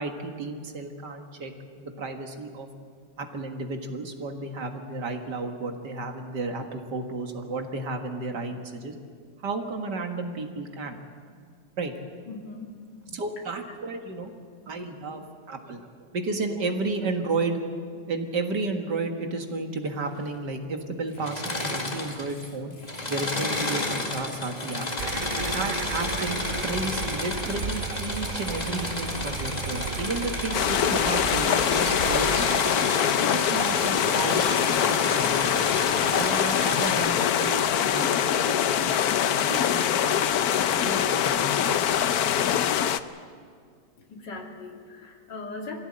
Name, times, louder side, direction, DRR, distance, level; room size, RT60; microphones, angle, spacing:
voice 1, 0.0-1.5 1.8-2.7 3.2-8.9 9.4-11.0 11.8-11.9 13.1-14.3 14.7-17.6 18.1-22.7 23.1-24.9 25.4-32.5 33.3-35.7 36.1-37.6 37.9-39.0 39.3-40.2 40.7-42.7, right 3 dB, 80° right, 4 dB, 2.4 m, -32 dB
voice 2, 12.2-13.2 14.0-14.1 14.6-14.9 15.2-15.3 34.2-34.5 44.0-45.8, left 3 dB, 90° left, 0 dB, 3.2 m, -40 dB
Engine / Mechanisms, 21.1-22.5 22.8-36.9, left 2 dB, 25° left, 2.0 m, -31 dB
sound 1, 25.0-32.6, right 7 dB, 60° right, 0.6 m, -35 dB
sound 2, 30.5-43.0, left 9 dB, 65° left, 1.2 m, -24 dB
24.0 x 16.0 x 8.8 m, 2.1 s
omnidirectional pair, 1.8 m